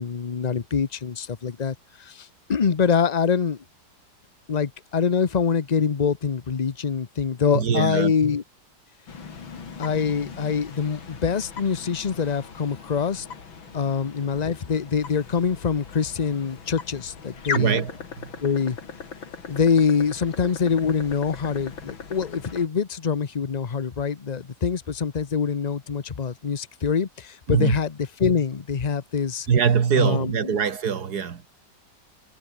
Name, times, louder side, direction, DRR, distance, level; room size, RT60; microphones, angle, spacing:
voice 1, 0.0-3.6 4.5-8.4 9.8-13.3 13.7-17.8 18.4-18.8 19.5-29.5 30.0-30.6, left 6 dB, 45° left, 0.5 m, -25 dB
voice 2, 7.5-8.1 17.5-17.9 18.2-18.3 27.5-27.8 29.5-31.5, right 7 dB, 55° right, 2.1 m, -22 dB
sound 1, 9.1-22.7, left 5 dB, 85° left, 3.4 m, -39 dB
omnidirectional pair, 2.1 m